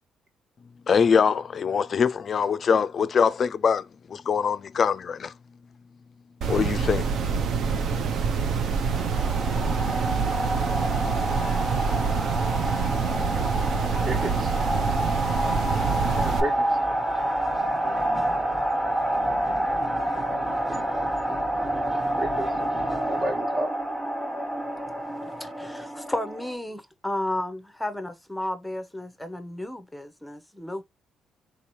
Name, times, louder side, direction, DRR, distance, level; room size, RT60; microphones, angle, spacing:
voice 1, 0.9-5.3 6.5-7.1, left 6 dB, 50° left, 0.3 m, -23 dB
sound 1, 6.4-16.4, right 5 dB, 70° right, 0.6 m, -26 dB
sound 2, 8.8-26.5, right 1 dB, 20° right, 1.3 m, -28 dB
voice 2, 14.0-14.5 16.1-16.7 22.1-22.5 23.0-23.7, right 1 dB, 55° right, 1.6 m, -31 dB
voice 3, 25.2-30.8, left 1 dB, 5° left, 0.6 m, -33 dB
3.8 x 2.8 x 2.9 m
cardioid pair, 90°, 0 cm